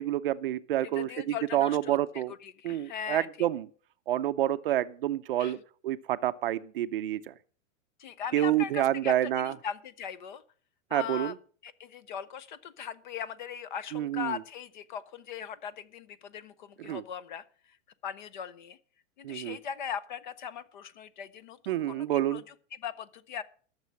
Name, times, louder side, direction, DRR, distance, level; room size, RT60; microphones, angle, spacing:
voice 1, 0.0-2.3 2.6-3.7 4.1-5.6 5.8-7.3 8.3-9.5 10.9-11.3 13.9-14.4 16.8-17.0 19.2-19.6 21.7-22.4, right 13 dB, 45° right, 0.5 m, -28 dB
voice 2, 0.9-3.5 5.4-5.6 8.0-10.4 10.9-11.3 11.6-17.8 18.0-18.8 19.2-23.4, left 8 dB, 35° left, 0.5 m, -39 dB
12.5 x 6.8 x 7.4 m
supercardioid pair, 165°, 40 cm